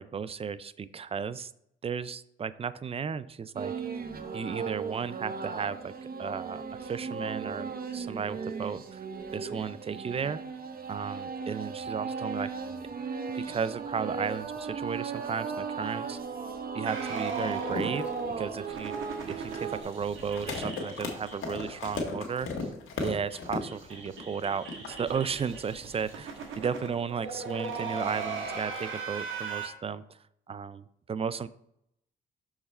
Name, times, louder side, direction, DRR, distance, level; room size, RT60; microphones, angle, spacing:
voice 1, 0.0-1.5 1.8-3.7 4.3-5.9 6.2-9.0 9.3-10.4 10.9-12.5 13.3-16.2 16.7-18.9 19.3-22.5 23.0-30.2 30.5-31.5, right 6 dB, 30° right, 16 dB, 0.3 m, -34 dB
sound 1, 3.6-19.8, right 5 dB, 45° right, 0.8 m, -36 dB
sound 2, 16.9-22.0 22.2-22.3 22.6-22.7 23.0-29.7, right 4 dB, 75° right, 1.3 m, -39 dB
sound 3, 17.7-26.0, left 4 dB, 80° left, 1.4 m, -37 dB
6.3 x 4.8 x 4.3 m, 0.76 s
cardioid pair, 75°, 20 cm